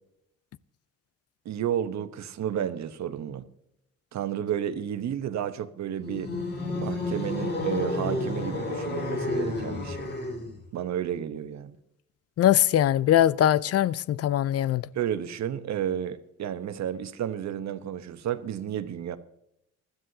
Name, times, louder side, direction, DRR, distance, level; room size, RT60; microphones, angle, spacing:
voice 1, 1.4-3.5 4.1-6.3 6.7-10.1 10.7-11.8 14.9-19.2, right 9 dB, 65° right, 1.0 m, -31 dB
sound 1, 6.0-10.6, left 2 dB, 35° left, 2.5 m, -31 dB
voice 2, 12.4-14.8, left 11 dB, 55° left, 0.5 m, -21 dB
20.5 x 13.0 x 2.8 m
cardioid pair, 90°, 30 cm